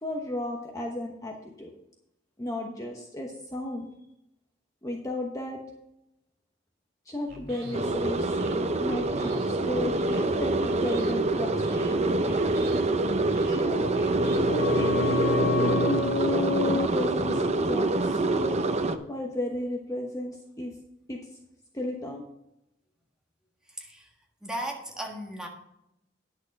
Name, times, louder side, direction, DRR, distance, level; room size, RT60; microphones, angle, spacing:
voice 1, 0.0-1.7 2.4-3.9 4.8-5.6 7.1-8.3 8.8-12.1 13.5-14.0 14.5-18.6 19.1-20.7 21.1-21.2 21.7-22.3, left 1 dB, 20° left, 0 dB, 1.1 m, -34 dB
sound 1, 7.3-14.4, right 1 dB, 55° right, 2.7 m, -41 dB
sound 2, 7.7-19.0, right 2 dB, 35° right, 0.7 m, -26 dB
sound 3, 13.8-19.2 19.5-19.6, left 5 dB, 45° left, 0.4 m, -31 dB
voice 2, 23.7-24.1 24.4-25.5, right 1 dB, 5° right, -1 dB, 1.6 m, -36 dB
10.5 x 6.6 x 5.2 m, 0.83 s
head